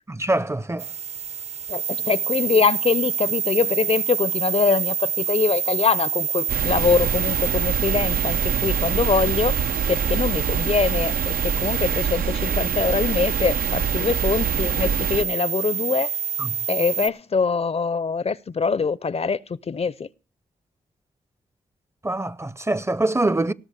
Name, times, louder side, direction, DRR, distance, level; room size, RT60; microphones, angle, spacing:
voice 1, 0.2-0.9 16.4-16.5 22.0-23.5, right 2 dB, 20° right, 0.6 m, -24 dB
sound 1, 0.8-17.1, right 7 dB, 50° right, 0.8 m, -27 dB
voice 2, 1.7-9.6 9.9-16.1 16.7-20.1, left 5 dB, 45° left, 0.6 m, -23 dB
sound 2, 6.5-15.2, right 6 dB, 85° right, 0.7 m, -26 dB
18.0 x 6.3 x 6.4 m
cardioid pair, 55°, 15 cm